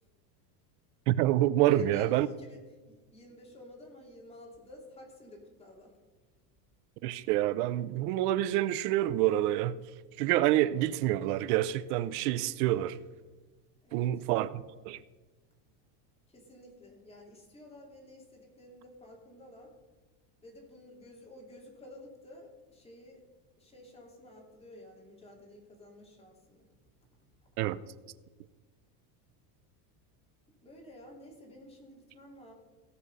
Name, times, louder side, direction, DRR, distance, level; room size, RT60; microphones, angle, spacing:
voice 1, 1.1-2.3 7.0-9.8 10.2-13.0 13.9-15.0 27.6-27.8, right 14 dB, 70° right, 0.7 m, -27 dB
voice 2, 1.6-2.6 2.9-6.0 13.8-14.1 16.3-19.7 20.4-23.2 23.6-26.7 30.6-32.5, left 1 dB, 10° left, 2.8 m, -51 dB
17.0 x 6.3 x 5.5 m
supercardioid pair, 145°, 47 cm